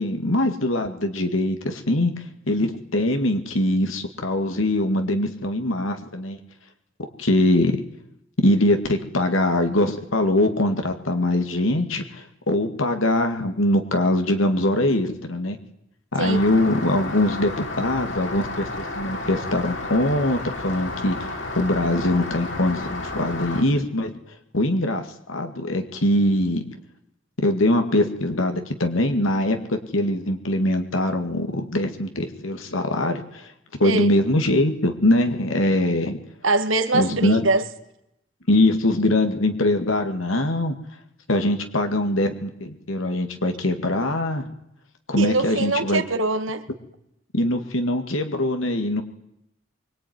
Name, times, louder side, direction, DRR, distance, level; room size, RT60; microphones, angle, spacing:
voice 1, 0.0-2.1 2.5-6.4 7.0-7.8 8.4-15.6 16.1-17.5 17.8-18.7 19.0-24.1 24.5-26.6 27.4-33.5 33.8-36.2 36.9-37.4 38.5-40.7 41.3-44.4 45.1-46.0 47.3-49.0, left 1 dB, 85° left, 2.2 m, -22 dB
Rain, 16.2-23.6, left 2 dB, 70° left, 4.1 m, -32 dB
voice 2, 36.4-37.6 45.2-46.6, right 3 dB, 80° right, 1.9 m, -23 dB
24.0 x 23.0 x 9.6 m
head